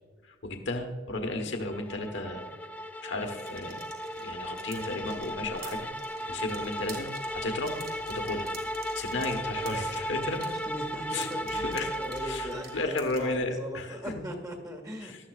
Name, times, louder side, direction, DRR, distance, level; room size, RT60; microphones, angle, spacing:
voice 1, 0.2-2.4 3.0-3.8 4.2-5.9 6.3-7.8 8.1-8.5 8.8-10.4 11.1-11.9 12.2-14.2 15.0-15.2, left 2 dB, 65° left, 4 dB, 1.2 m, -34 dB
sound 1, 1.7-13.0, equal, 10° left, 0.4 m, -36 dB
sound 2, 3.2-13.4, right 5 dB, 55° right, 3.1 m, -49 dB
voice 2, 10.5-15.3, equal, 20° right, 4 dB, 1.6 m, -39 dB
18.5 x 13.0 x 2.4 m, 1.5 s
head